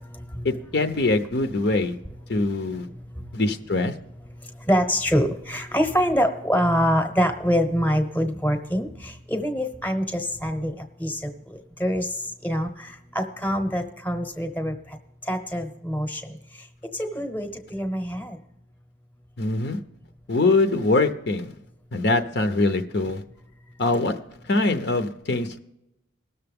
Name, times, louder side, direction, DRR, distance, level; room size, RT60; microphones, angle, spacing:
voice 1, 0.4-2.0 2.3-2.9 3.3-3.9 19.4-19.8 20.3-21.5 21.9-23.2 23.8-24.2 24.4-25.6, left 2 dB, 55° left, 7 dB, 0.7 m, -23 dB
voice 2, 4.7-10.7 11.0-11.3 11.8-12.1 12.4-12.7 13.1-14.7 15.3-16.2 17.0-18.4, equal, 10° left, 6 dB, 0.9 m, -24 dB
19.0 x 6.8 x 3.5 m, 0.87 s
head